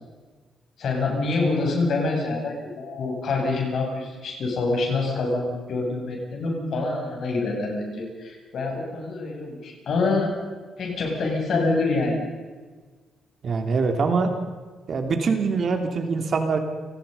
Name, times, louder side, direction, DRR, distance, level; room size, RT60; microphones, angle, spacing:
voice 1, 0.8-10.3 10.8-12.2, left 3 dB, 55° left, 0 dB, 8.0 m, -26 dB
voice 2, 13.4-14.3 14.9-16.6, right 4 dB, 45° right, 6 dB, 2.8 m, -23 dB
29.5 x 19.0 x 5.5 m, 1.4 s
cardioid pair, 155°, 0 cm